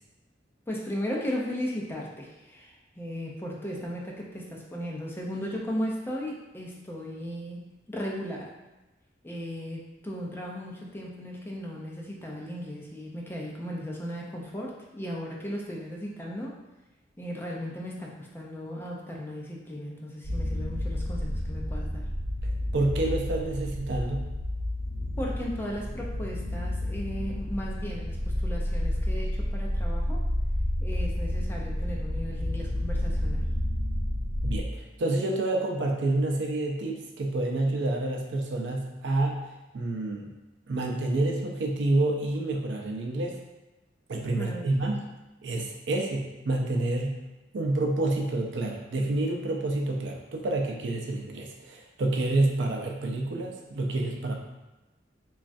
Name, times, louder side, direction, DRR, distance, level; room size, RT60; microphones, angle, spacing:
voice 1, 0.7-8.5 9.2-16.6 17.2-22.0 25.2-30.2 30.8-33.5 44.4-44.7, equal, 10° left, -3 dB, 0.4 m, -36 dB
sound 1, 20.2-34.6, left 1 dB, 35° left, 0.9 m, -30 dB
voice 2, 22.4-24.3 34.4-39.5 39.7-40.3 40.7-43.4 44.1-45.0 45.4-47.1 47.5-54.3, right 2 dB, 70° right, 1 dB, 0.4 m, -28 dB
3.1 x 2.3 x 2.5 m, 1.1 s
head